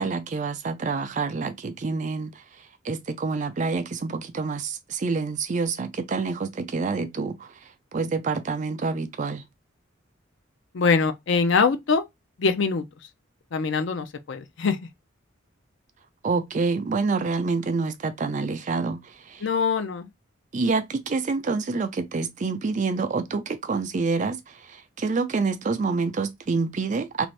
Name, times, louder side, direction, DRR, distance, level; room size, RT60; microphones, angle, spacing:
voice 1, 0.0-2.4 2.8-7.5 7.9-9.4 16.2-19.4 20.5-27.3, right 4 dB, 40° right, 0.4 m, -27 dB
voice 2, 10.7-12.0 12.4-12.8 13.5-14.8 19.4-20.1, left 5 dB, 65° left, 0.5 m, -23 dB
2.6 x 2.5 x 3.2 m
head